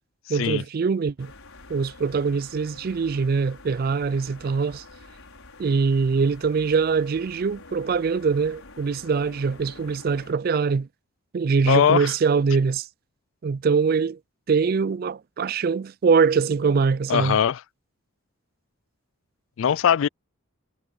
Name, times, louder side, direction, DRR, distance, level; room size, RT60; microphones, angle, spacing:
voice 1, 0.3-1.3 1.7-4.8 5.6-10.9 11.3-12.9 13.4-14.2 14.5-17.4, right 5 dB, 45° right, 0.3 m, -23 dB
sound 1, 1.2-10.3, left 3 dB, 85° left, 6.0 m, -47 dB
voice 2, 11.7-12.1 17.1-17.6 19.6-20.1, left 8 dB, 65° left, 0.3 m, -20 dB
head